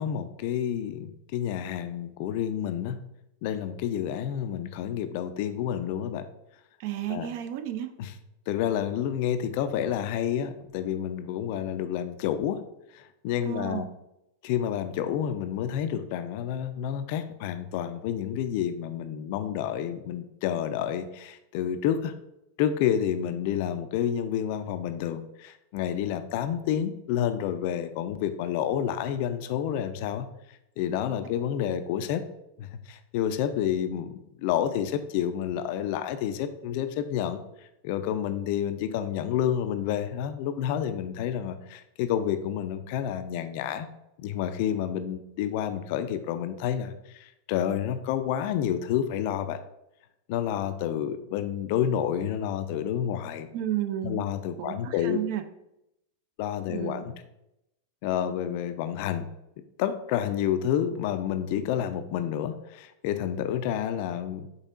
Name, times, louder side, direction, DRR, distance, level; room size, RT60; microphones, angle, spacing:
voice 1, 0.0-3.0 3.4-6.3 7.1-7.3 8.0-8.1 8.5-12.6 12.9-13.8 14.4-22.1 22.6-30.3 30.8-32.2 32.6-37.4 37.8-43.9 44.2-49.6 50.3-53.5 54.0-55.2 56.4-57.1 58.0-59.3 59.8-64.5, left 9 dB, 45° left, 10 dB, 0.3 m, -29 dB
voice 2, 6.8-7.9 13.4-13.9 53.5-54.3 54.6-55.5 56.7-57.1, right 11 dB, 45° right, 9 dB, 0.4 m, -32 dB
5.3 x 3.5 x 2.5 m, 0.86 s
figure-of-eight pair, 90°, 0 cm